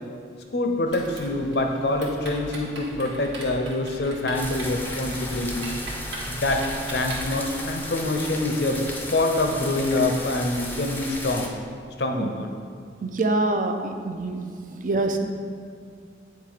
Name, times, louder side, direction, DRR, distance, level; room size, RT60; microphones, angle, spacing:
voice 1, 0.5-5.7 6.2-8.8 9.1-11.5 12.0-12.5, left 2 dB, 65° left, 4 dB, 0.6 m, -25 dB
Typing, 0.9-7.7, right 2 dB, 90° right, 1.4 m, -38 dB
sound 1, 4.3-11.5, left 1 dB, 10° left, 0.5 m, -35 dB
voice 2, 13.0-14.4 14.8-15.3, right 2 dB, 45° right, 5 dB, 0.5 m, -25 dB
8.7 x 3.3 x 4.9 m, 2.3 s
head